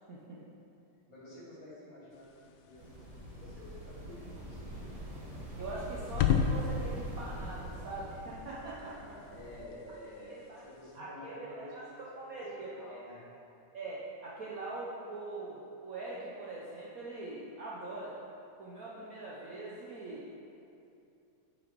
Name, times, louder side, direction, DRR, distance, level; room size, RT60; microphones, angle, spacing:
voice 1, 0.1-0.4 5.6-8.9 10.5-10.6 10.9-11.8 12.2-13.0 13.7-18.1 18.5-20.2, right 2 dB, 60° right, -6 dB, 1.0 m, -42 dB
voice 2, 1.1-5.0 8.5-13.2, left 1 dB, 45° left, -7 dB, 1.8 m, -50 dB
sound 1, 2.1-11.0, left 7 dB, 85° left, 0.9 m, -37 dB
sound 2, 2.8-9.6, right 1 dB, 35° right, 0.6 m, -44 dB
6.8 x 5.9 x 4.5 m, 2.7 s
omnidirectional pair, 2.3 m